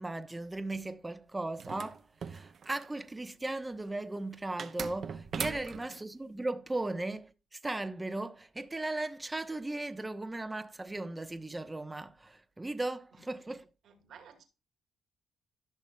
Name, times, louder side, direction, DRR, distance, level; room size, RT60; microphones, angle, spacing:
voice 1, 0.0-13.7, right 2 dB, 15° right, 0.9 m, -37 dB
sound 1, 1.6-3.0 4.6-6.0, right 6 dB, 55° right, 0.8 m, -39 dB
voice 2, 5.4-5.9 13.8-14.4, right 7 dB, 70° right, 2.1 m, -53 dB
14.0 x 6.0 x 2.3 m
cardioid pair, 90°, 0 cm